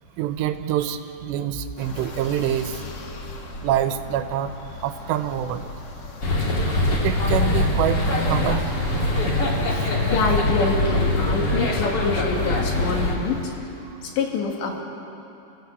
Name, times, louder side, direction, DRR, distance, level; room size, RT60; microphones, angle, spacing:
voice 1, 0.2-2.8 3.6-4.5 4.8-5.7 7.0-8.7 9.7-9.9, right 11 dB, 90° right, 9 dB, 3.0 m, -26 dB
sound 1, 1.8-13.6, left 2 dB, 60° left, 1.1 m, -39 dB
sound 2, 6.2-13.2, left 2 dB, 30° left, 2.6 m, -22 dB
voice 2, 10.1-13.5 14.0-14.8, left 4 dB, 90° left, 1 dB, 4.4 m, -26 dB
29.5 x 15.5 x 8.3 m, 2.8 s
omnidirectional pair, 4.9 m